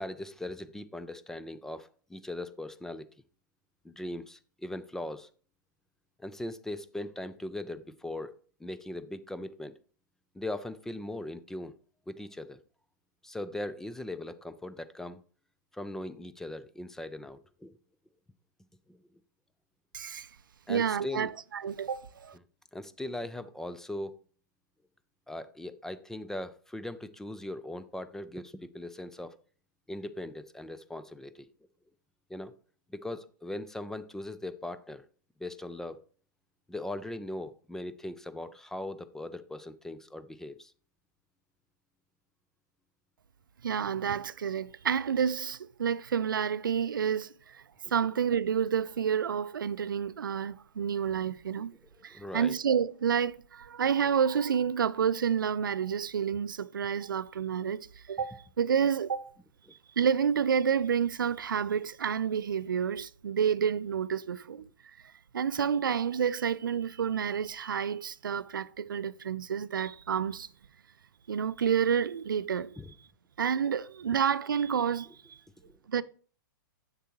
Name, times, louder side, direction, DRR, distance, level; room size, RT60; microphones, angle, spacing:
voice 1, 0.0-3.1 3.8-5.3 6.2-9.7 10.3-11.7 12.1-12.6 13.2-15.2 15.7-17.8 18.9-19.0 20.7-21.3 22.7-24.2 25.3-29.4 29.9-31.5 32.3-32.5 32.9-35.0 35.4-36.0 36.7-40.7 52.1-52.6 59.7-59.8 72.8-72.9, left 1 dB, 5° left, 0.3 m, -39 dB
voice 2, 19.9-20.3 20.7-22.4 43.6-47.6 47.9-51.7 52.0-59.3 60.0-64.6 65.3-70.5 71.3-72.7 73.4-75.4 75.9-76.0, right 7 dB, 80° right, 0.4 m, -29 dB
7.4 x 6.7 x 2.9 m
hypercardioid pair, 115°, 11 cm